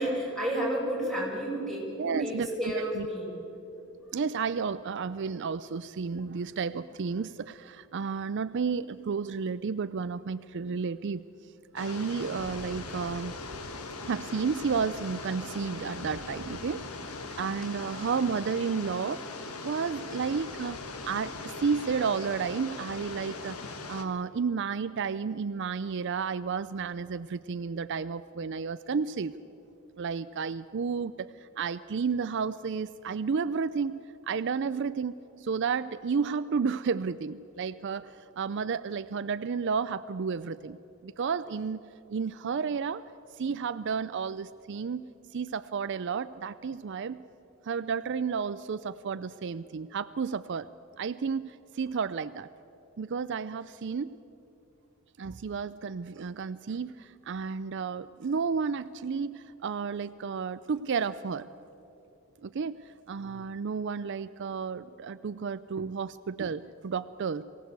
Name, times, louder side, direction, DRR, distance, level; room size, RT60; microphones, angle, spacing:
voice 1, 0.0-3.3, right 1 dB, ahead, -4 dB, 6.1 m, -31 dB
voice 2, 2.0-3.1 4.1-11.2 11.7-13.4 14.1-17.1 17.4-19.3 19.6-23.6 23.9-29.3 30.0-34.0 34.2-40.8 41.0-41.8 42.1-43.0 43.3-45.1 45.3-47.2 47.6-50.7 51.0-52.5 53.0-54.1 55.2-61.5 62.4-67.4, right 5 dB, 55° right, 14 dB, 0.4 m, -32 dB
sound 1, 11.8-24.0, left 3 dB, 90° left, 1.7 m, -40 dB
23.0 x 17.0 x 8.1 m, 2.9 s
head